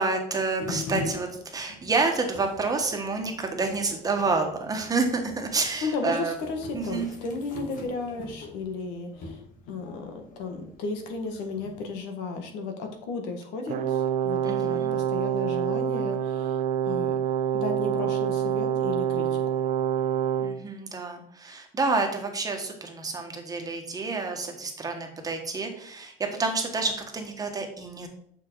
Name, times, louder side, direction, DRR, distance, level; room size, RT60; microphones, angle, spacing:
voice 1, 0.0-6.3 6.7-7.1 14.4-14.9 20.4-28.1, right 3 dB, 20° right, 3 dB, 1.4 m, -29 dB
sound 1, 0.6-11.9, left 3 dB, 50° left, 2.0 m, -42 dB
voice 2, 5.8-9.4 9.7-17.1 17.5-19.4, left 3 dB, 85° left, 5 dB, 1.5 m, -34 dB
Brass instrument, 13.7-20.6, right 9 dB, 50° right, 0.7 m, -26 dB
6.7 x 6.0 x 4.6 m, 0.67 s
cardioid pair, 135°, 17 cm